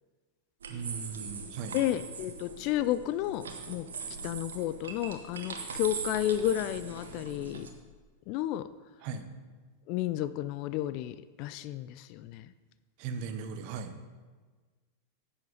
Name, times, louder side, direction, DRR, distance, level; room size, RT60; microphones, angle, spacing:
sound 1, 0.6-7.7, right 5 dB, 65° right, 1.1 m, -41 dB
voice 1, 0.7-1.7 9.0-9.3 13.0-13.9, right 6 dB, 45° right, 9 dB, 0.9 m, -38 dB
voice 2, 1.7-3.9 4.2-7.7 8.3-8.7 9.9-12.5, left 13 dB, 45° left, 14 dB, 0.3 m, -32 dB
10.5 x 7.2 x 5.0 m, 1.4 s
figure-of-eight pair, 90°, 0 cm